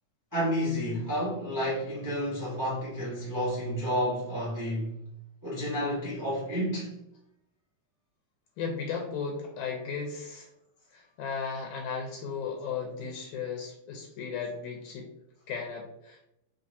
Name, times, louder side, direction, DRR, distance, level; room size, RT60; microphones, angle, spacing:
voice 1, 0.3-4.9 5.4-7.0, equal, 30° right, 0.3 m, -30 dB
voice 2, 8.6-10.5 10.9-15.1 15.5-16.2, left 5 dB, 85° left, 2.0 m, -35 dB
5.7 x 2.9 x 2.7 m
omnidirectional pair, 3.4 m